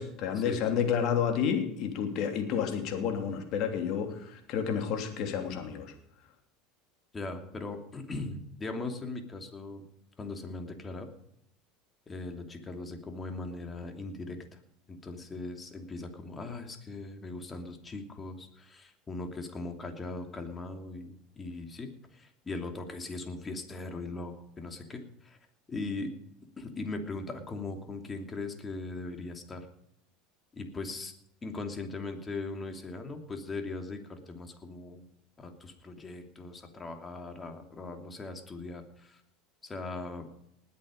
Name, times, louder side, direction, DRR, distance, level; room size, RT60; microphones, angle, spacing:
voice 1, 0.0-5.9, left 7 dB, 55° left, 5 dB, 3.1 m, -30 dB
voice 2, 7.1-9.8 10.2-11.1 12.1-14.6 14.9-25.4 25.7-26.1 26.6-29.7 30.5-31.1 31.4-35.0 35.4-39.2 39.6-40.3, left 3 dB, 25° left, 5 dB, 2.9 m, -39 dB
20.0 x 8.6 x 5.2 m, 0.72 s
hypercardioid pair, 85°, 0 cm